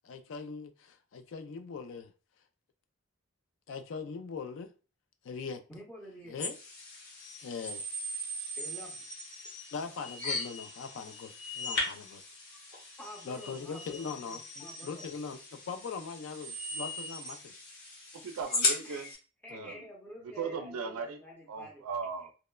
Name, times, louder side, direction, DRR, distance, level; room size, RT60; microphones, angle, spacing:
voice 1, 0.0-2.1 3.7-4.7 5.2-5.6 6.3-6.5 7.4-7.8 9.7-12.2 13.2-17.5 19.5-19.7, left 5 dB, 60° left, 0.3 m, -41 dB
voice 2, 5.7-6.4 8.6-9.0 13.0-15.1 18.8-19.0 19.4-21.8, equal, 5° left, 0.7 m, -48 dB
sound 1, 6.4-19.2, left 2 dB, 45° left, 0.9 m, -38 dB
voice 3, 18.1-19.1 19.5-19.9 20.2-21.2 21.5-22.3, right 5 dB, 90° right, 0.4 m, -38 dB
2.9 x 2.1 x 2.2 m
head